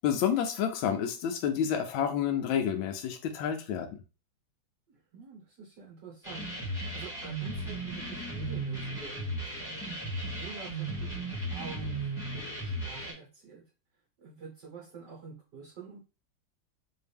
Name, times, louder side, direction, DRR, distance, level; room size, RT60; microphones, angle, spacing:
voice 1, 0.0-3.9, left 8 dB, 85° left, 1.3 m, -29 dB
voice 2, 4.9-13.6 14.2-16.0, right 4 dB, 60° right, 2.1 m, -47 dB
sound 1, 6.2-13.1, right 2 dB, ahead, 1.5 m, -36 dB
4.1 x 2.7 x 3.4 m
omnidirectional pair, 2.1 m